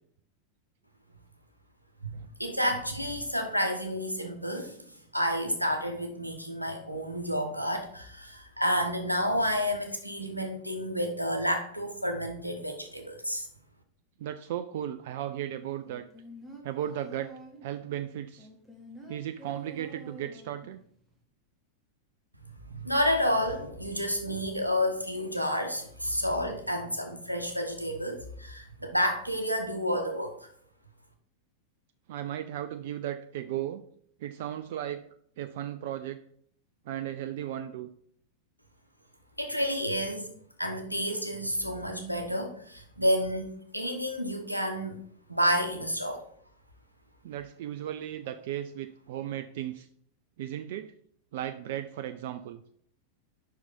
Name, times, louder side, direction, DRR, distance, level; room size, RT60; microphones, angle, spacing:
voice 1, 2.1-4.8 5.1-13.5 22.7-30.3 39.4-40.3 40.6-45.0 45.3-46.2, equal, 90° right, 4 dB, 1.0 m, -30 dB
voice 2, 14.2-16.0 16.6-17.3 17.6-18.5 19.1-20.8 32.1-33.8 34.2-35.0 35.4-36.2 36.9-37.9 47.2-49.9 50.4-50.9 51.3-52.6, right 11 dB, 55° right, 9 dB, 0.3 m, -35 dB
sound 1, 15.9-17.8 18.4-20.8 21.1-21.2, equal, 5° right, 1.4 m, -48 dB
5.5 x 4.7 x 5.2 m, 0.64 s
figure-of-eight pair, 90°, 0 cm